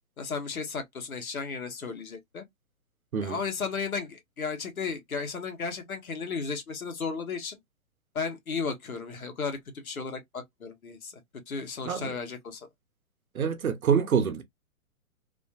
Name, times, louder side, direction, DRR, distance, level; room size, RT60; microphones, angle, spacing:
voice 1, 0.2-2.4 3.2-7.6 8.1-11.2 11.5-12.7, left 5 dB, 80° left, 1.3 m, -34 dB
voice 2, 13.3-14.4, right 7 dB, 85° right, 0.9 m, -26 dB
2.9 x 2.6 x 2.3 m
hypercardioid pair, 125°, 42 cm